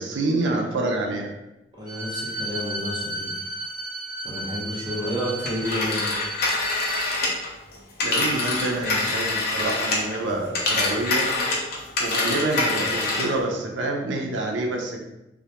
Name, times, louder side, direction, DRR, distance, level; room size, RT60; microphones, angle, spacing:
voice 1, 0.0-1.3 8.0-11.3 12.0-15.0, right 2 dB, 80° right, 1 dB, 0.4 m, -27 dB
voice 2, 1.8-3.4 4.2-6.1, equal, 25° right, -5 dB, 0.6 m, -30 dB
Bowed string instrument, 1.9-7.1, right 1 dB, 10° left, 1.1 m, -33 dB
Telephone, 5.4-10.2 10.5-13.4, left 2 dB, 60° left, 0.5 m, -25 dB
2.2 x 2.1 x 2.8 m, 0.92 s
head